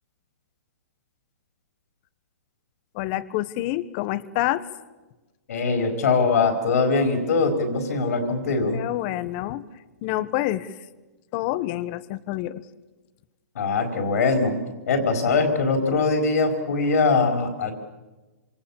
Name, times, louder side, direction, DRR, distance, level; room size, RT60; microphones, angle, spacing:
voice 1, 2.9-4.7 8.7-9.7 10.0-10.7 11.3-12.6, left 15 dB, 40° left, 15 dB, 1.3 m, -27 dB
voice 2, 5.5-8.8 13.5-14.6 14.9-17.7, left 4 dB, 70° left, 5 dB, 4.7 m, -22 dB
26.5 x 26.5 x 7.3 m, 1.2 s
hypercardioid pair, 140°, 9 cm